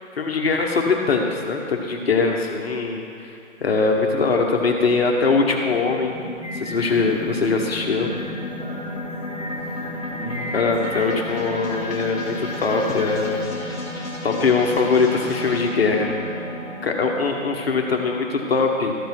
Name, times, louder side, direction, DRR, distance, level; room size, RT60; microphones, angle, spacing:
voice 1, 0.2-6.2 6.5-8.1 10.5-13.7 14.2-16.1 16.8-19.0, left 4 dB, 50° left, 1 dB, 1.2 m, -22 dB
sound 1, 5.6-18.2, left 1 dB, 10° left, 1.7 m, -33 dB
Singing, 6.4-13.5, left 1 dB, 35° left, 0.4 m, -36 dB
voice 2, 8.5-11.4, left 1 dB, 15° right, -14 dB, 2.3 m, -40 dB
13.5 x 5.3 x 6.0 m, 2.7 s
hypercardioid pair, 170°, 39 cm